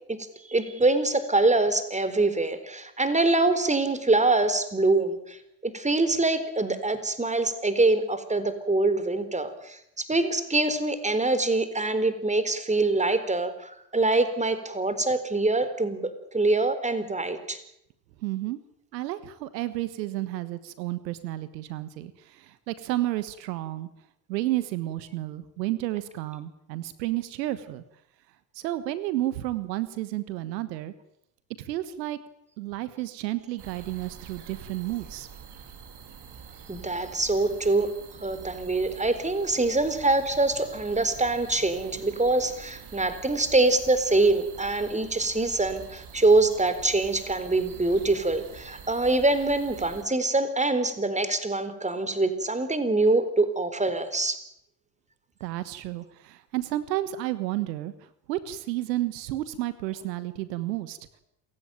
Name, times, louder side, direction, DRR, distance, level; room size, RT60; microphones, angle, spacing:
voice 1, 0.4-16.0 16.3-17.6 36.7-37.9 38.2-54.4, right 2 dB, 15° right, 11 dB, 4.1 m, -24 dB
voice 2, 18.2-18.6 18.9-23.9 24.3-27.8 28.5-30.9 31.6-32.2 32.6-35.3 55.4-61.0, right 15 dB, 80° right, 14 dB, 1.5 m, -31 dB
sound 1, 33.6-50.0, right 6 dB, 50° right, 4.6 m, -46 dB
28.0 x 16.0 x 9.1 m, 0.78 s
hypercardioid pair, 65°, 50 cm